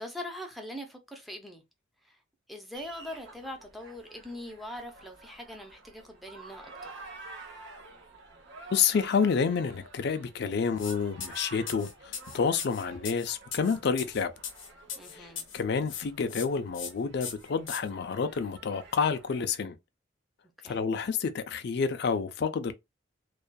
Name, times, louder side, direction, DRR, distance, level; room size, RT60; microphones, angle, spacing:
voice 1, 0.0-1.6 2.0-2.2 2.5-6.9 15.0-15.5 20.6-20.8, left 1 dB, ahead, 0.5 m, -42 dB
sound 1, 2.7-19.5, right 3 dB, 65° right, 0.8 m, -50 dB
voice 2, 8.7-14.3 15.1-19.7 20.6-22.7, left 6 dB, 60° left, 0.4 m, -29 dB
sound 2, 10.8-11.0 11.2-15.6 15.9-16.5 16.7-16.9 17.2-17.8, left 7 dB, 85° left, 0.7 m, -39 dB
2.6 x 2.3 x 2.2 m
head